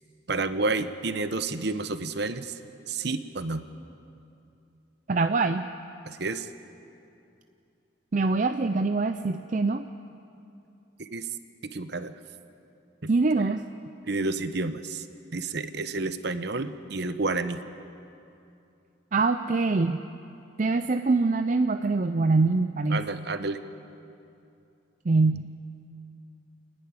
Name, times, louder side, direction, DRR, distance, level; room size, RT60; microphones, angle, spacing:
voice 1, 0.3-2.6 2.9-3.6 6.1-6.5 11.0-11.3 11.7-12.1 13.0-13.1 14.1-15.1 15.3-17.6 22.9-23.6, right 3 dB, 55° right, 11 dB, 0.9 m, -30 dB
voice 2, 5.1-5.6 8.1-9.9 13.1-13.6 19.1-20.0 20.6-23.0 25.1-25.5, right 3 dB, 40° right, 8 dB, 0.5 m, -24 dB
29.5 x 10.5 x 9.7 m, 2.7 s
head